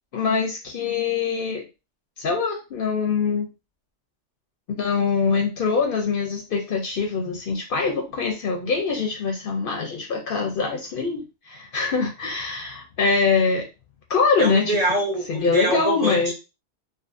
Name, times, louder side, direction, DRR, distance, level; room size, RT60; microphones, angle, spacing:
voice 1, 0.1-1.7 2.2-3.5 4.7-13.7 14.1-14.8 15.3-16.3, left 5 dB, 60° left, 2 dB, 0.7 m, -23 dB
voice 2, 14.4-16.3, right 1 dB, 40° right, -2 dB, 0.7 m, -24 dB
2.5 x 2.4 x 2.4 m, 0.28 s
omnidirectional pair, 1.2 m